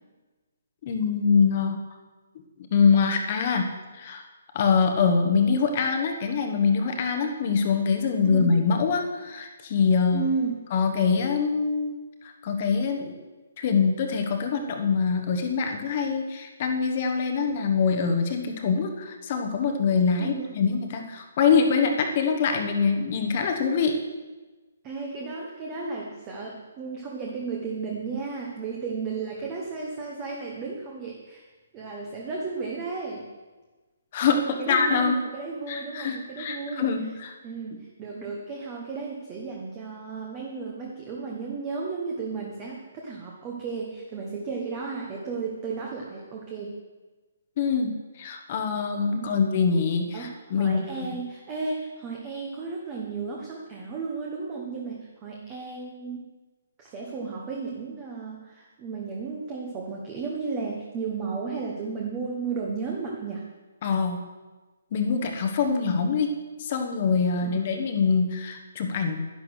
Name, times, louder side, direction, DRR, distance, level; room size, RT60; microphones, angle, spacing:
voice 1, 0.8-1.8 2.7-4.2 4.5-10.2 10.7-12.0 12.2-13.2 13.6-24.0 34.1-35.2 35.7-37.3 47.6-51.1 63.8-64.2 64.9-66.3 66.6-69.2, left 5 dB, 25° left, 5 dB, 1.2 m, -24 dB
voice 2, 10.1-10.6 20.2-20.6 24.8-31.4 31.7-33.3 34.4-36.9 37.4-46.8 49.1-49.4 50.1-56.2 56.8-63.4 67.4-67.7, right 4 dB, 15° right, -2 dB, 1.1 m, -34 dB
11.0 x 11.0 x 6.4 m, 1.2 s
hypercardioid pair, 180°, 0 cm